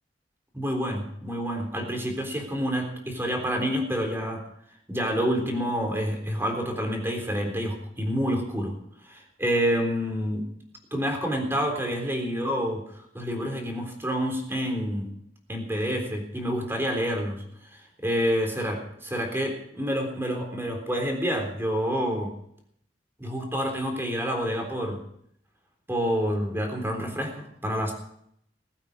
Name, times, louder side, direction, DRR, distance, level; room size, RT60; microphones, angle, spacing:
voice 1, 0.5-4.4 4.9-8.7 9.1-10.4 10.9-12.8 13.1-15.1 15.5-17.4 17.7-22.3 23.2-25.0 25.9-27.9, equal, 15° right, 3 dB, 3.7 m, -28 dB
20.5 x 8.9 x 6.7 m, 0.70 s
head